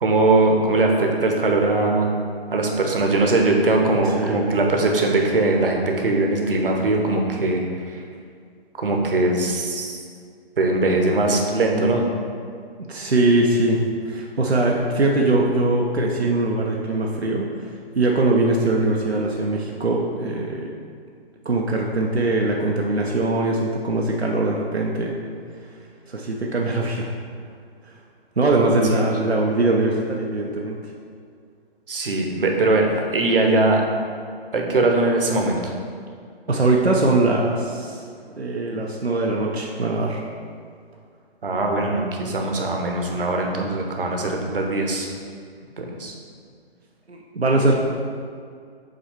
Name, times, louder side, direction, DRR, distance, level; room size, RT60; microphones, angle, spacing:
voice 1, 0.0-2.1 2.5-7.7 7.9-8.0 8.8-10.0 10.6-12.0 28.9-29.0 31.9-33.8 34.5-35.7 41.4-45.1 45.8-46.1, right 2 dB, 60° right, 1 dB, 1.1 m, -21 dB
voice 2, 12.9-13.8 14.0-17.5 17.9-20.7 21.4-25.1 26.1-27.1 28.4-30.8 36.5-38.0 38.4-40.2 47.1-47.7, right 2 dB, 85° right, -2 dB, 0.8 m, -21 dB
7.7 x 3.3 x 4.5 m, 2.2 s
figure-of-eight pair, 135°, 31 cm